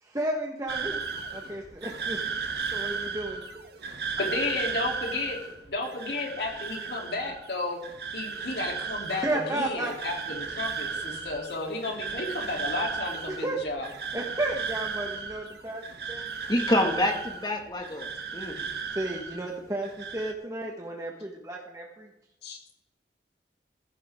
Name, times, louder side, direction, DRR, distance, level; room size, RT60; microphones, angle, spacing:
voice 1, 0.0-2.2 2.7-3.4 9.1-9.9 13.3-15.8 16.1-16.3 18.9-22.1, right 1 dB, 20° right, -1 dB, 1.4 m, -33 dB
sound 1, 0.7-19.6 19.8-20.3, right 5 dB, 65° right, 1.4 m, -35 dB
voice 2, 4.2-5.4 5.7-7.8 8.1-13.9 22.4-22.6, left 2 dB, 70° left, 0 dB, 3.4 m, -32 dB
voice 3, 16.5-18.6, left 1 dB, 25° left, 3 dB, 1.9 m, -27 dB
15.5 x 14.0 x 3.8 m, 0.93 s
head